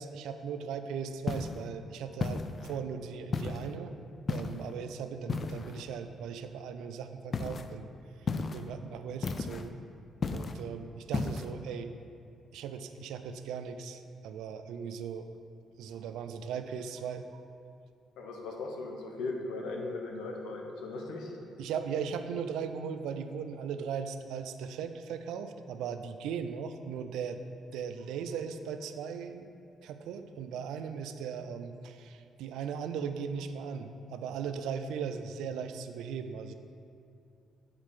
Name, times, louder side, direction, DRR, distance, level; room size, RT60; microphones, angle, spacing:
voice 1, 0.0-3.9 4.3-7.9 8.2-8.3 8.5-9.7 10.3-11.9 12.5-15.3 15.8-17.4 21.6-27.4 27.7-29.5 29.8-36.5, right 6 dB, 90° right, 9 dB, 0.4 m, -38 dB
sound 1, 1.3-1.6 2.2-2.8 3.3-3.7 4.3-4.7 5.3-5.8 7.3-7.7 8.3-8.7 9.2-9.7 10.2-10.6 11.1-11.5, left 4 dB, 45° left, 0.3 m, -34 dB
voice 2, 18.2-21.3, left 3 dB, 90° left, 1 dB, 0.9 m, -38 dB
7.4 x 4.0 x 4.8 m, 2.5 s
cardioid pair, 90°, 0 cm